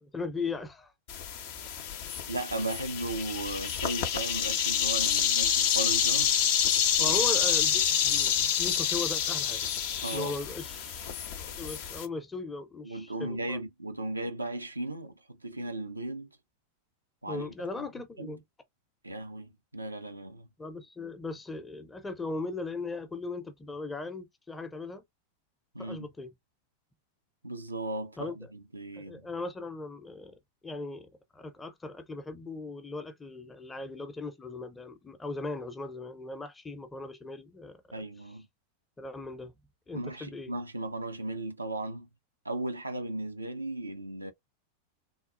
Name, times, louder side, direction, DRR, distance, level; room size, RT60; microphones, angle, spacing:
voice 1, 0.0-0.9 7.0-9.7 10.1-13.6 17.3-18.4 20.6-25.0 25.8-26.3 28.2-28.4 29.0-30.3 30.6-38.0 39.0-39.5 39.9-40.5, left 3 dB, 10° left, 0.6 m, -38 dB
sound 1, 1.1-12.1, left 9 dB, 50° left, 0.6 m, -28 dB
voice 2, 2.3-6.3 7.0-7.2 10.0-10.3 12.8-16.3 17.2-17.5 18.2-18.3 19.0-20.5 25.7-26.1 27.4-29.3 37.9-38.5 39.9-42.1 42.4-44.3, right 2 dB, 80° right, 0.5 m, -36 dB
3.7 x 2.3 x 2.4 m
figure-of-eight pair, 90°, 0 cm